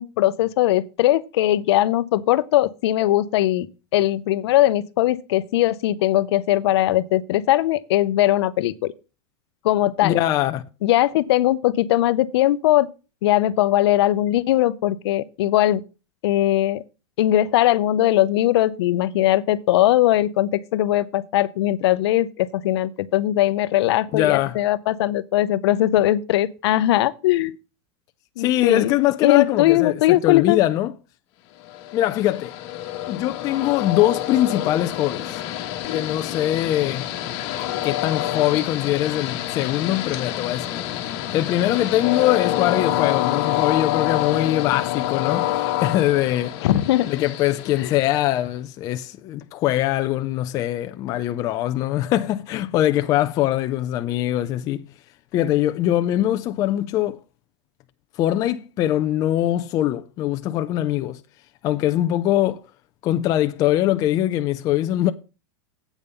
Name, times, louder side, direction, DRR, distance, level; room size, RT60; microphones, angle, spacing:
voice 1, 0.0-3.7 3.9-8.9 9.6-10.2 10.8-12.9 13.2-15.8 16.2-16.8 17.2-27.6 28.4-28.9 29.2-30.6 46.6-47.1 47.8-48.0, left 14 dB, 60° left, 0.7 m, -20 dB
voice 2, 10.0-10.6 24.1-24.5 28.4-30.9 31.9-32.5 33.1-35.4 35.9-37.1 37.8-40.8 41.3-46.6 47.0-54.9 55.3-57.2 58.2-61.2 61.6-62.6 63.0-65.1, left 13 dB, 25° left, 0.4 m, -22 dB
Train, 31.7-48.4, left 13 dB, 40° left, 1.3 m, -27 dB
8.3 x 5.4 x 6.7 m
supercardioid pair, 165°, 15 cm